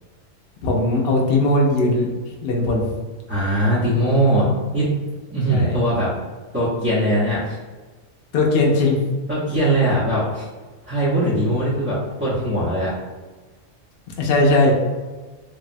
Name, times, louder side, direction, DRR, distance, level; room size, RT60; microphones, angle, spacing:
voice 1, 0.6-2.1 2.4-2.8 5.5-5.7 8.3-9.0 14.2-14.7, left 2 dB, 65° left, -1 dB, 0.7 m, -18 dB
voice 2, 3.3-4.9 5.3-6.1 6.5-7.6 9.3-10.5 10.9-12.9, right 1 dB, 20° right, -10 dB, 0.4 m, -20 dB
3.3 x 2.0 x 2.5 m, 1.3 s
omnidirectional pair, 1.3 m